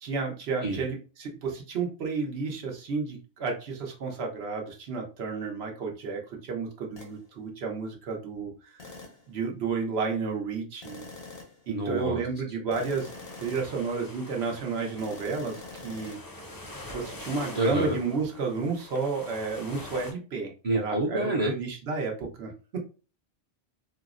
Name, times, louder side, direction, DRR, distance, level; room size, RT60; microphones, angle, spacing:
voice 1, 0.0-8.8 9.3-11.1 11.7-13.1 13.4-16.2 16.9-22.8, right 4 dB, 85° right, 1 dB, 1.0 m, -32 dB
sound 1, 7.0-7.2 8.8-9.3 10.8-11.7 12.7-13.8 15.0-16.2, left 3 dB, 75° left, 1.1 m, -44 dB
voice 2, 11.7-12.2 17.5-18.0 20.6-21.5, right 1 dB, 50° right, -2 dB, 0.5 m, -27 dB
sound 2, 12.8-20.1, left 1 dB, 30° left, 0.5 m, -44 dB
4.1 x 2.0 x 2.4 m, 0.35 s
omnidirectional pair, 1.1 m